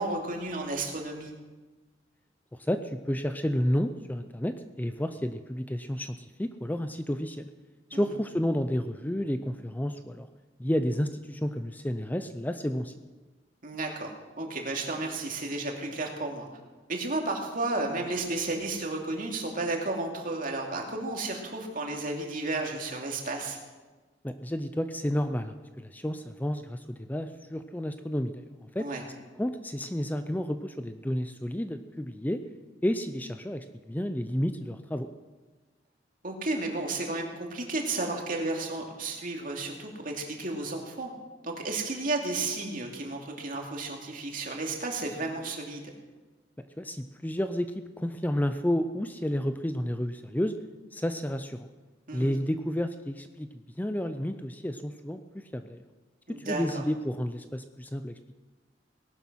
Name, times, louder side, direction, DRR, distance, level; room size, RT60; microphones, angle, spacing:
voice 1, 0.0-1.3 7.9-8.2 13.6-14.1 14.4-16.5 16.9-23.6 28.8-29.0 36.2-41.1 41.4-45.8 52.1-52.3 56.3-56.8, right 2 dB, 50° right, 1 dB, 2.6 m, -33 dB
voice 2, 2.6-7.5 7.9-10.3 10.6-12.9 24.2-28.5 28.7-28.9 29.4-32.4 32.8-35.1 46.8-50.6 50.9-51.7 52.1-53.5 53.8-55.8 56.4-58.3, equal, 10° left, 9 dB, 0.5 m, -31 dB
18.5 x 11.5 x 6.2 m, 1.3 s
head